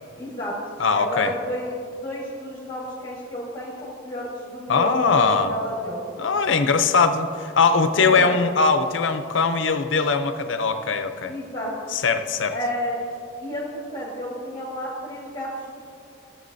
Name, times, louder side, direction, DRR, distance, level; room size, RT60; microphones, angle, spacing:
voice 1, 0.1-0.6 0.9-6.1 8.0-8.3 11.3-11.7 12.5-12.9 13.4-15.7, equal, 20° left, -6 dB, 1.6 m, -31 dB
voice 2, 0.8-1.3 4.7-5.5 6.2-11.3 11.9-12.5, left 4 dB, 85° left, 9 dB, 0.6 m, -21 dB
16.0 x 7.3 x 2.7 m, 2.5 s
head